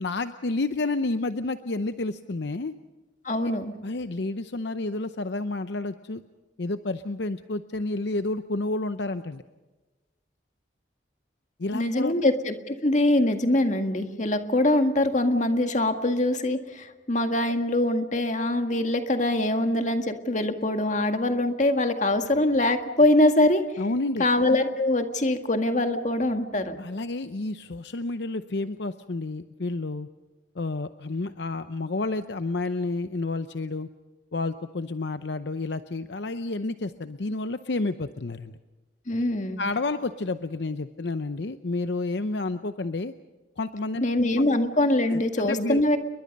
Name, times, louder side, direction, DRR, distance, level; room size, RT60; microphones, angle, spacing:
voice 1, 0.0-2.7 3.8-6.2 6.6-9.4 11.6-12.1 23.8-24.3 26.8-30.1 30.6-33.9 34.3-38.6 39.6-43.1 43.6-44.0 45.1-45.8, left 2 dB, 65° left, 10 dB, 0.7 m, -30 dB
voice 2, 3.2-3.7 11.7-23.6 24.2-26.9 39.1-39.6 44.0-46.0, left 1 dB, 40° left, 6 dB, 1.9 m, -23 dB
29.5 x 22.5 x 5.4 m, 1.2 s
head